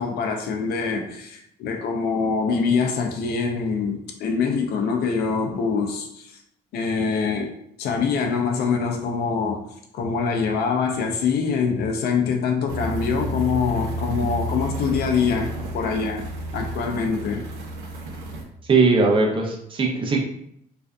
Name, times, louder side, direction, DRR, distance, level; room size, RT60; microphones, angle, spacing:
voice 1, 0.0-6.3 6.7-7.5 7.8-9.6 9.9-16.3 16.5-17.5, left 5 dB, 65° left, 3 dB, 0.5 m, -24 dB
sound 1, 12.7-18.4, right 1 dB, 80° right, 0.7 m, -31 dB
voice 2, 18.7-20.2, right 4 dB, 30° right, 0 dB, 0.6 m, -19 dB
2.6 x 2.3 x 2.2 m, 0.70 s
cardioid pair, 110°, 17 cm